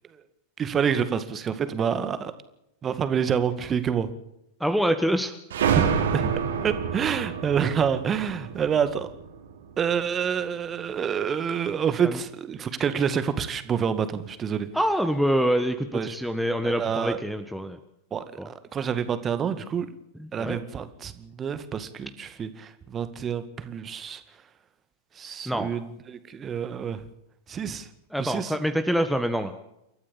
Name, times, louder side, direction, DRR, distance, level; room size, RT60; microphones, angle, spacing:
voice 1, 0.6-2.3 2.8-4.1 5.8-6.3 6.6-9.1 9.8-14.7 15.9-16.2 16.6-17.2 18.1-19.9 20.3-24.2 25.2-27.0 27.5-27.9 28.2-28.5, right 7 dB, 25° right, 12 dB, 2.0 m, -27 dB
voice 2, 4.6-5.3 12.0-12.2 14.7-17.8 18.4-18.5 20.2-20.6 25.4-25.7 28.1-29.5, equal, ahead, 6 dB, 1.5 m, -25 dB
sound 1, 5.5-10.0, right 7 dB, 60° right, 3.6 m, -28 dB
28.5 x 14.0 x 7.3 m, 0.83 s
figure-of-eight pair, 90°, 0 cm